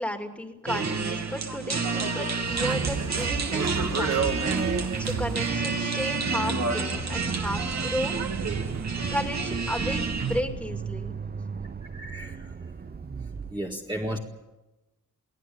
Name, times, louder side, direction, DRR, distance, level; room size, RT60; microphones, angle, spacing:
voice 1, 0.0-4.6 5.0-8.4 9.1-11.1, equal, 5° left, 4 dB, 2.6 m, -34 dB
sound 1, 0.7-10.4, right 4 dB, 55° right, 2.7 m, -29 dB
sound 2, 2.4-10.0, right 5 dB, 85° right, 3.0 m, -37 dB
Accelerating revving vroom, 6.9-13.5, right 5 dB, 30° right, 0.7 m, -37 dB
voice 2, 11.9-12.5 13.5-14.2, right 1 dB, 15° right, -1 dB, 2.0 m, -33 dB
23.5 x 17.5 x 8.9 m, 0.99 s
wide cardioid pair, 145°, 33 cm